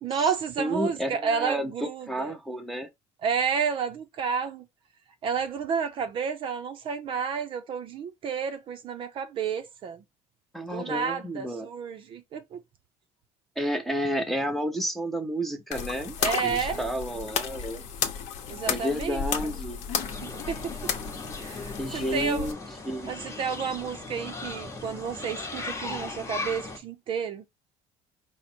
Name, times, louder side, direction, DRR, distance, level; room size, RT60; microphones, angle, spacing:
voice 1, 0.0-2.3 3.2-4.6 5.2-10.0 10.7-12.6 16.2-16.9 18.5-19.2 20.2-20.9 21.4-22.5 23.1-27.4, right 6 dB, 45° right, 0.5 m, -31 dB
voice 2, 0.6-2.9 10.5-11.7 13.6-16.2 16.4-17.8 18.7-19.8 21.8-22.6 22.9-23.3, equal, ahead, 0.6 m, -31 dB
sound 1, 15.7-22.5, left 7 dB, 65° left, 0.9 m, -33 dB
sound 2, 19.9-26.8, left 3 dB, 20° left, 0.9 m, -38 dB
5.0 x 2.1 x 4.3 m
cardioid pair, 140°, 13 cm